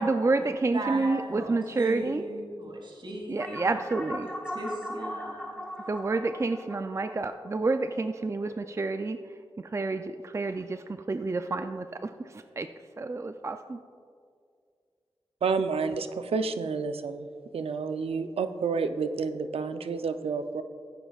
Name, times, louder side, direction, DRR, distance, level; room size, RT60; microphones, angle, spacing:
voice 1, 0.0-2.2 3.3-4.3 5.9-12.7 13.0-13.8, right 3 dB, 30° right, 8 dB, 0.4 m, -29 dB
voice 2, 0.7-1.5 1.8-3.8 4.5-5.6, right 1 dB, 55° right, -1 dB, 2.6 m, -37 dB
sound 1, 3.4-8.2, equal, 10° left, 2.1 m, -39 dB
voice 3, 15.4-17.3 17.5-20.6, right 5 dB, 75° right, 9 dB, 0.6 m, -29 dB
15.5 x 8.9 x 2.4 m, 2.2 s
cardioid pair, 50°, 10 cm